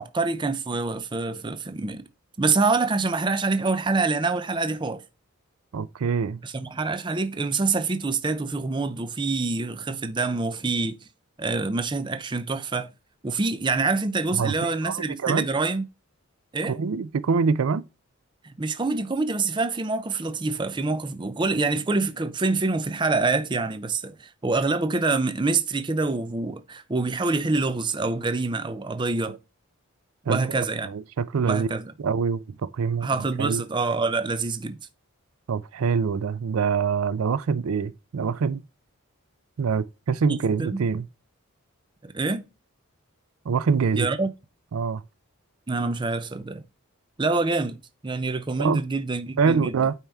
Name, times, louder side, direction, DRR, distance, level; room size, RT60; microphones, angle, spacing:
voice 1, 0.0-2.0 2.4-5.0 6.4-11.0 11.4-12.9 13.2-15.9 16.5-16.8 18.4-29.4 30.3-30.9 31.4-31.9 33.0-34.8 40.6-40.8 42.0-42.4 44.0-44.3 45.7-46.6 47.2-49.8, right 3 dB, 20° right, 0.5 m, -26 dB
voice 2, 5.7-6.4 14.4-15.5 16.7-17.8 29.2-29.4 30.3-31.7 32.0-33.1 33.4-33.6 35.5-38.6 39.6-41.1 43.5-44.1 44.7-45.0 48.6-48.8 49.4-49.9, right 5 dB, 75° right, 0.4 m, -25 dB
8.8 x 4.5 x 3.5 m
head